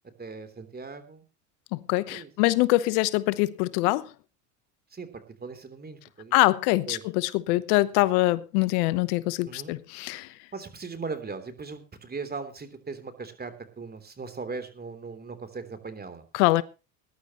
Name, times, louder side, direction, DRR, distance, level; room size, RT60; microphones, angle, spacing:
voice 1, 0.2-1.2 2.1-2.3 4.9-6.3 6.9-7.0 9.4-9.7 10.5-16.2, right 4 dB, 20° right, 3.3 m, -39 dB
voice 2, 1.7-4.1 6.3-10.4 16.3-16.6, left 19 dB, 75° left, 1.1 m, -24 dB
20.5 x 11.5 x 3.0 m
supercardioid pair, 100°, 45 cm